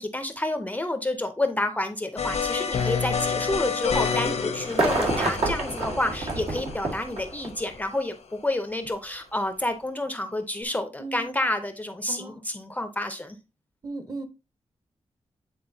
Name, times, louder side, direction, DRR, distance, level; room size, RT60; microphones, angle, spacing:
voice 1, 0.0-13.4, left 1 dB, 15° left, 0.6 m, -29 dB
sound 1, 2.2-8.0, left 6 dB, 85° left, 0.9 m, -29 dB
voice 2, 4.2-4.6 11.0-11.3 12.1-12.4 13.8-14.2, right 2 dB, 35° right, 1.0 m, -36 dB
sound 2, 4.6-7.8 8.8-8.9, right 2 dB, 70° right, 1.7 m, -28 dB
8.8 x 4.1 x 2.7 m
wide cardioid pair, 155°, 11 cm